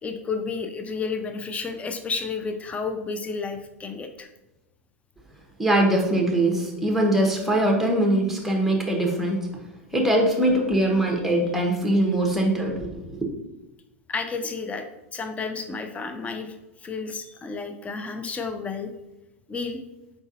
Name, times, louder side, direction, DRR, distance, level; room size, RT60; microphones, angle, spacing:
voice 1, 0.0-4.3 14.1-14.9 15.1-18.9 19.5-19.8, left 4 dB, 20° left, 7 dB, 0.5 m, -31 dB
voice 2, 5.6-9.5 9.9-13.0, right 1 dB, 5° right, 0 dB, 1.0 m, -22 dB
4.6 x 3.9 x 2.5 m, 0.98 s
hypercardioid pair, 95°, 7 cm